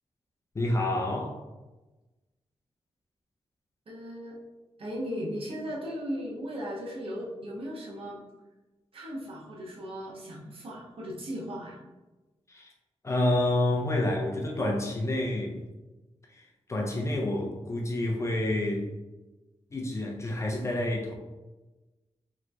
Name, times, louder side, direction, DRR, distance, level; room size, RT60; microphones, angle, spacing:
voice 1, 0.5-1.4 12.5-12.7 13.0-15.6 16.7-18.9 19.7-21.1, left 1 dB, 25° left, 0 dB, 0.5 m, -28 dB
voice 2, 3.9-4.4 4.8-8.2 8.9-11.8, equal, 60° right, -4 dB, 1.0 m, -37 dB
3.8 x 3.1 x 3.3 m, 1.1 s
wide cardioid pair, 175°, 11 cm